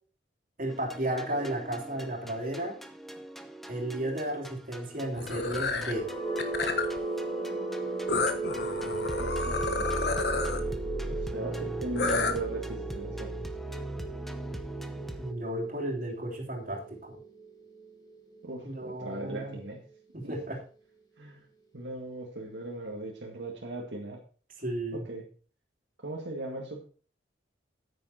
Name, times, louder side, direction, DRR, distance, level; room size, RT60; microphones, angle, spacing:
voice 1, 0.6-2.8 3.7-6.1 15.2-17.2 18.6-19.6 20.1-20.6 24.6-25.0, right 1 dB, 45° right, 0 dB, 3.1 m, -33 dB
sound 1, 0.7-15.3, equal, ahead, 0.8 m, -40 dB
sound 2, 5.2-5.9 6.4-7.0 8.1-10.6 12.0-12.3, left 4 dB, 60° left, 1.3 m, -30 dB
sound 3, 5.7-19.6, right 3 dB, 20° left, 2.4 m, -37 dB
voice 2, 8.8-10.0 11.0-13.3 18.4-19.8 20.2-20.3 21.2-21.4 21.7-24.2 24.9-25.3 26.0-26.8, right 2 dB, 80° right, 0 dB, 1.9 m, -38 dB
9.2 x 9.2 x 4.4 m, 0.40 s
head